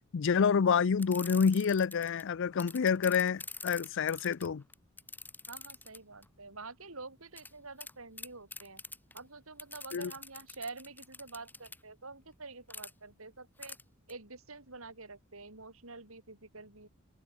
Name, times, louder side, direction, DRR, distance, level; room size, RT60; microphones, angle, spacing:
voice 1, 0.1-4.6 9.9-10.1, left 6 dB, 60° left, 0.5 m, -28 dB
sound 1, 1.0-2.2 2.6-6.2 7.4-7.5 7.8-7.9 8.2-9.2 9.6-11.8 12.7-12.9 13.6-13.8 14.1-14.2, left 3 dB, 10° left, 6.4 m, -45 dB
voice 2, 5.5-8.8 9.1-13.8 14.1-16.9, right 3 dB, 70° right, 5.2 m, -47 dB
head